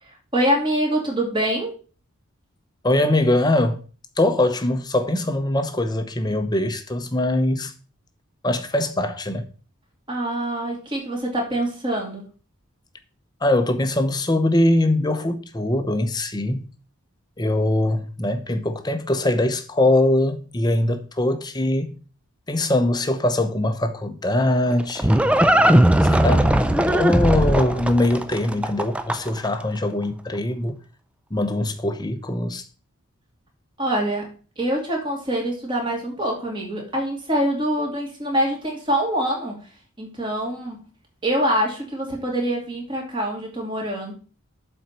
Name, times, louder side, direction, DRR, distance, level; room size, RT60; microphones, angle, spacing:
voice 1, 0.0-1.7 10.1-12.2 33.8-34.3 34.6-39.6 40.0-40.8 41.2-44.1, right 1 dB, 20° right, 2.6 m, -25 dB
voice 2, 2.8-3.9 4.2-7.7 8.4-9.5 13.4-16.7 17.4-22.0 22.5-25.2 26.0-30.8 31.3-32.7, left 1 dB, 20° left, 0.8 m, -22 dB
Livestock farm animals working animals, 24.4-29.5, right 1 dB, 5° right, 0.4 m, -18 dB
7.3 x 4.4 x 6.7 m
head